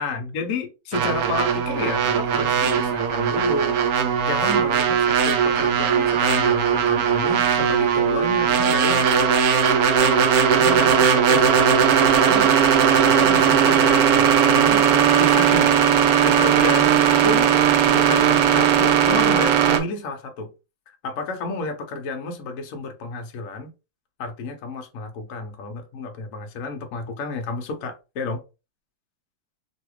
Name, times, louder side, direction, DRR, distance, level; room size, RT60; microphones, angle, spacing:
voice 1, 0.0-3.8 4.2-9.1 10.0-10.3 10.5-12.5 13.0-16.0 16.2-17.5 17.9-20.5 21.0-23.7 24.2-28.4, left 3 dB, 65° left, 0.8 m, -31 dB
sound 1, 0.9-19.8, right 8 dB, 75° right, 0.8 m, -18 dB
3.1 x 2.7 x 3.0 m
omnidirectional pair, 2.1 m